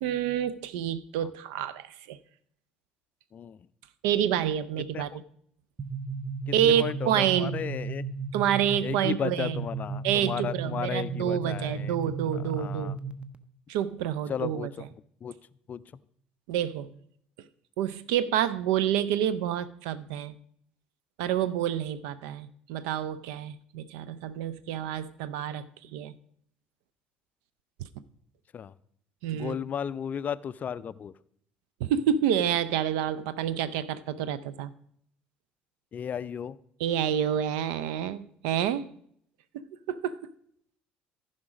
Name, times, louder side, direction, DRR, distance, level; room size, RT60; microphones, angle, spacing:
voice 1, 0.0-2.2 4.0-5.1 6.5-7.6 8.3-9.7 10.0-12.9 13.7-14.7 16.5-16.9 17.8-20.3 21.2-26.1 29.2-29.6 31.8-34.7 36.8-38.9 39.5-40.2, right 10 dB, 60° right, 16 dB, 0.4 m, -28 dB
sound 1, 5.8-13.3, right 4 dB, 20° right, 0.7 m, -35 dB
voice 2, 6.5-8.1 8.8-12.0 12.3-13.0 14.3-14.8 15.2-15.3 15.7-15.8 28.5-28.7 29.3-31.1 35.9-36.6, left 8 dB, 35° left, 18 dB, 0.4 m, -34 dB
14.5 x 5.1 x 4.9 m, 0.67 s
figure-of-eight pair, 55°, 5 cm